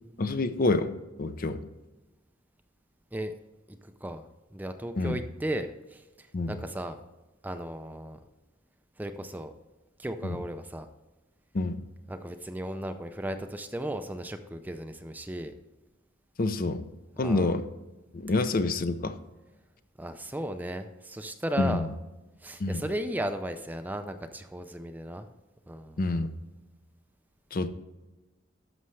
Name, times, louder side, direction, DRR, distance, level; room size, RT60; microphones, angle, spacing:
voice 1, 0.2-0.9 1.2-1.6 5.0-5.2 6.3-6.5 10.2-10.4 11.5-11.8 16.4-16.8 17.2-17.6 18.1-19.2 21.6-21.9 22.6-22.8 26.0-26.3 27.5-27.7, left 2 dB, 45° left, 10 dB, 0.6 m, -27 dB
voice 2, 3.7-4.3 4.5-7.0 7.4-8.2 9.0-9.5 10.0-10.9 12.1-15.5 17.2-17.6 20.0-21.9 22.4-25.3 25.7-26.0, right 1 dB, 10° right, 8 dB, 0.4 m, -35 dB
11.0 x 6.4 x 3.2 m, 1.1 s
head